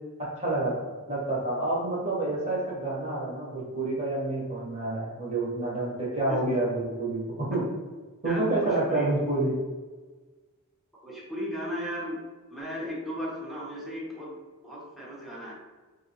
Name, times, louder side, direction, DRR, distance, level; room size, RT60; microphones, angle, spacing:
voice 1, 0.4-7.6 8.2-9.5, right 2 dB, 30° right, -5 dB, 1.2 m, -28 dB
voice 2, 8.2-9.1 11.0-12.2 12.5-15.5, equal, ahead, -5 dB, 0.9 m, -36 dB
4.1 x 2.7 x 3.0 m, 1.3 s
head